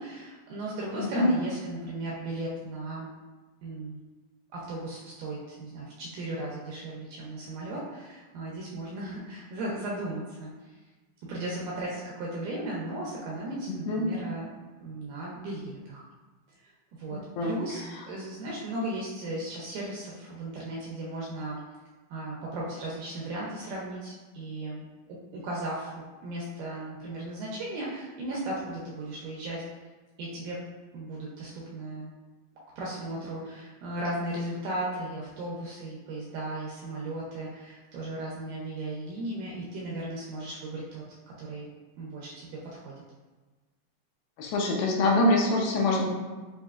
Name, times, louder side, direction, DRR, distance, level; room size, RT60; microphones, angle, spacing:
voice 1, 0.0-3.1 3.6-4.0 4.5-10.7 11.3-14.5 14.8-16.0 16.6-16.7 17.0-21.6 22.1-24.9 25.3-29.6 30.2-30.6 30.9-32.1 32.8-41.0 41.4-41.7 42.0-42.9, right 1 dB, 80° right, -5 dB, 2.0 m, -36 dB
voice 2, 1.0-1.3 13.9-14.1 17.1-17.6 44.4-46.1, left 2 dB, 80° left, -1 dB, 2.5 m, -24 dB
6.7 x 2.7 x 2.4 m, 1.3 s
omnidirectional pair, 4.2 m